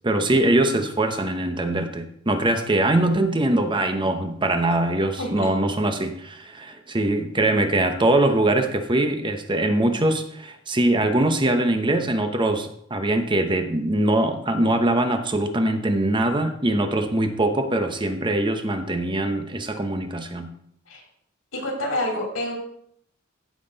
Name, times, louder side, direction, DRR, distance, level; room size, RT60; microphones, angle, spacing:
voice 1, 0.0-20.5, right 1 dB, 25° right, 6 dB, 0.9 m, -22 dB
voice 2, 5.2-5.5 20.9-21.0 21.5-22.5, left 1 dB, 90° left, -1 dB, 3.8 m, -27 dB
15.5 x 5.9 x 4.0 m, 0.71 s
head